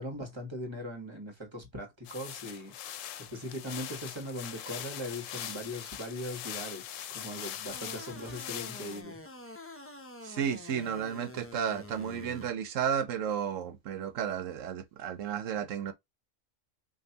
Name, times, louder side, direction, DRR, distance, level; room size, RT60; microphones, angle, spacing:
voice 1, 0.0-2.7 3.3-9.2, left 1 dB, 20° right, 1.4 m, -40 dB
sound 1, 2.0-9.0, left 10 dB, 75° left, 0.9 m, -42 dB
sound 2, 7.7-12.5, left 2 dB, 20° left, 0.3 m, -47 dB
voice 2, 10.2-15.9, right 8 dB, 75° right, 1.1 m, -33 dB
5.2 x 2.7 x 2.8 m
omnidirectional pair, 1.4 m